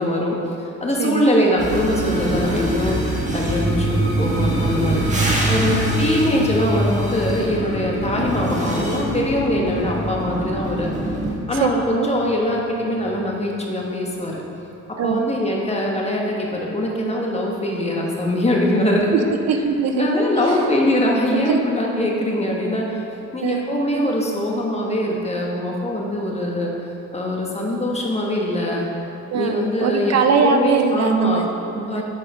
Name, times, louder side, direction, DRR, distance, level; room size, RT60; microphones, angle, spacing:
voice 1, 0.0-3.0 3.3-5.0 5.4-10.9 11.5-14.4 15.0-19.1 19.9-23.0 23.3-26.7 27.1-28.9 29.3-31.4 31.9-32.0, left 1 dB, 20° left, -2 dB, 1.3 m, -22 dB
voice 2, 1.0-1.4 5.7-5.9 11.5-11.7 11.9-12.1 15.0-15.3 19.1-20.6 21.3-21.6 23.4-23.7 29.3-32.0, right 5 dB, 60° right, 5 dB, 0.6 m, -22 dB
sound 1, 1.6-11.4, equal, 25° right, 1.4 m, -26 dB
sound 2, 2.9-12.7, right 1 dB, 45° right, 1.2 m, -26 dB
8.4 x 4.3 x 5.0 m, 2.9 s
cardioid pair, 90°, 30 cm